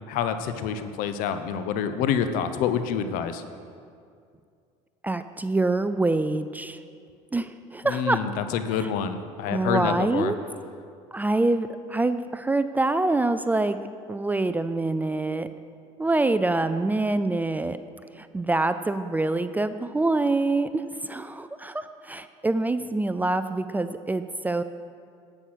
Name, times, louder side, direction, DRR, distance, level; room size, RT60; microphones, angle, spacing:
voice 1, 0.1-3.4 7.8-10.3, left 7 dB, 65° left, 10 dB, 0.8 m, -27 dB
voice 2, 5.0-6.8 7.3-8.2 8.8-8.9 9.5-10.4 11.1-13.8 14.1-15.5 16.0-17.8 18.1-24.6, right 2 dB, 10° right, 11 dB, 0.4 m, -25 dB
9.7 x 8.1 x 6.3 m, 2.3 s
supercardioid pair, 100°, 15 cm